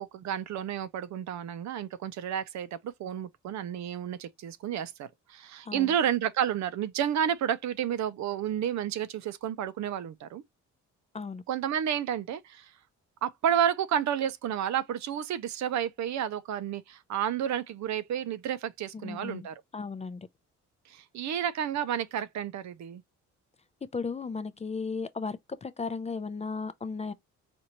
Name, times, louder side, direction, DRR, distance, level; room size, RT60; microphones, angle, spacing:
voice 1, 0.0-10.4 11.5-12.7 13.2-19.5 20.9-23.0, right 9 dB, 65° right, 0.6 m, -31 dB
voice 2, 18.9-19.5 19.7-20.3 23.9-27.1, left 4 dB, 20° left, 0.4 m, -35 dB
4.4 x 2.5 x 2.9 m
cardioid pair, 90°, 30 cm